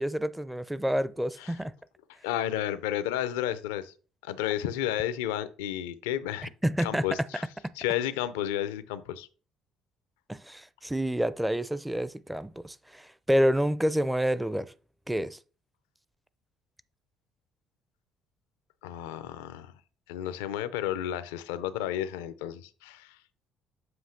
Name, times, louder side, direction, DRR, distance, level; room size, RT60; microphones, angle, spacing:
voice 1, 0.0-1.7 6.6-7.0 7.6-7.7 10.3-14.7 15.1-15.4, equal, 5° right, 0.4 m, -28 dB
voice 2, 2.2-3.9 4.2-6.5 6.8-7.5 7.8-9.3 18.8-19.7 20.1-23.2, left 11 dB, 90° left, 0.5 m, -32 dB
7.7 x 2.8 x 5.7 m
supercardioid pair, 70°, 0 cm